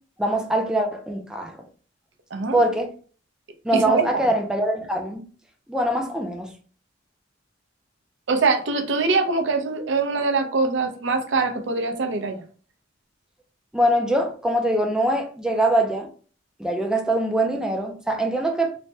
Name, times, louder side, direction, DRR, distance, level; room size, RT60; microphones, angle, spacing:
voice 1, 0.2-1.6 2.5-2.9 3.6-5.2 5.7-6.5 13.7-16.1 16.6-18.7, right 1 dB, 5° right, 0.3 m, -23 dB
voice 2, 3.7-4.2 8.3-12.4, right 3 dB, 75° right, 0.5 m, -23 dB
3.2 x 2.1 x 2.7 m
head